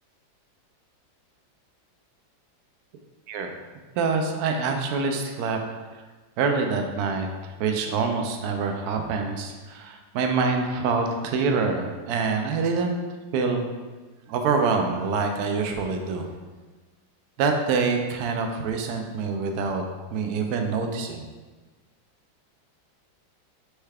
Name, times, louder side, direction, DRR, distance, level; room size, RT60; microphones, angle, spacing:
voice 1, 3.3-3.6 4.0-5.6 6.4-12.9 13.3-13.6 14.3-16.3 17.4-19.8 20.1-21.2, right 4 dB, 75° right, 4 dB, 0.9 m, -25 dB
4.6 x 3.2 x 3.4 m, 1.3 s
omnidirectional pair, 2.0 m